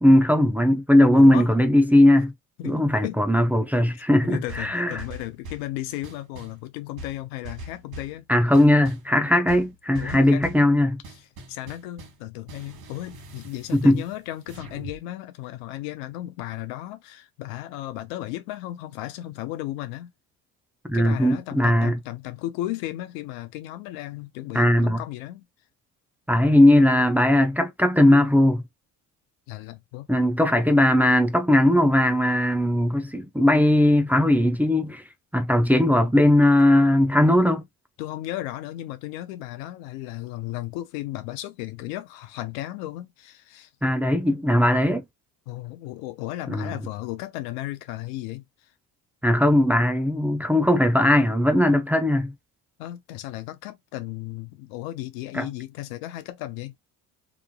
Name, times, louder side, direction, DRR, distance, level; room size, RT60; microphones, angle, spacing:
voice 1, 0.0-2.3 2.6-5.0 8.3-11.0 13.7-14.0 20.9-22.0 24.5-25.0 26.3-28.6 30.1-35.0 35.3-37.6 43.8-45.0 46.5-46.7 49.2-52.3 55.3-55.5, left 1 dB, 5° right, 0.5 m, -19 dB
voice 2, 1.1-1.5 2.6-3.2 3.9-8.2 9.9-10.4 11.5-20.1 20.9-25.5 29.5-30.1 38.0-43.7 45.5-48.4 52.8-56.7, left 15 dB, 85° left, 0.6 m, -35 dB
sound 1, 4.5-5.7 6.0-6.6 7.0-8.2 8.5-9.1 9.5-10.7 11.0-12.2 12.5-15.0, right 1 dB, 65° right, 1.2 m, -42 dB
2.9 x 2.5 x 2.2 m
supercardioid pair, 70°, 40 cm